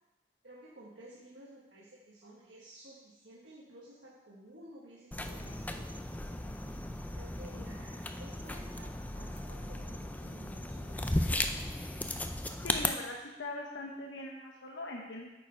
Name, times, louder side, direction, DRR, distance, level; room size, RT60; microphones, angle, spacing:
voice 1, 0.4-11.8, right 1 dB, 80° right, -5 dB, 1.3 m, -54 dB
sound 1, 5.1-12.9, left 1 dB, 10° left, 0.4 m, -36 dB
voice 2, 12.6-15.3, left 2 dB, 80° left, 0 dB, 1.0 m, -41 dB
9.0 x 6.5 x 4.4 m, 1.0 s
head